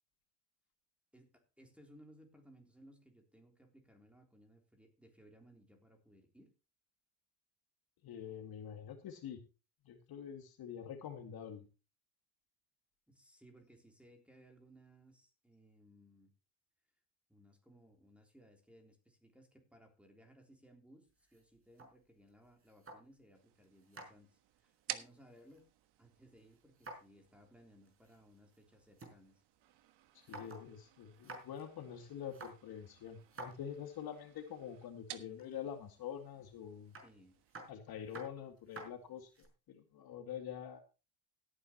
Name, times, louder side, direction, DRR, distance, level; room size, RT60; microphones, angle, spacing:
voice 1, 1.1-6.5 13.1-16.3 17.3-25.7 26.0-29.4 37.0-37.4, equal, ahead, 3 dB, 3.5 m, -62 dB
voice 2, 8.0-9.4 9.8-11.7 30.1-37.0 37.7-40.8, left 8 dB, 50° left, 5 dB, 2.2 m, -46 dB
sound 1, 21.1-23.3 23.6-25.9 26.1-27.2 27.5-27.6 27.9-29.2 29.6-29.7 30.0-30.7 31.0-31.6 32.2-34.2 35.1-35.7 36.9-39.5, right 2 dB, 25° right, 4.9 m, -53 dB
sound 2, 23.3-37.7, right 13 dB, 55° right, 1.4 m, -54 dB
16.5 x 9.8 x 3.0 m, 0.31 s
supercardioid pair, 95°, 48 cm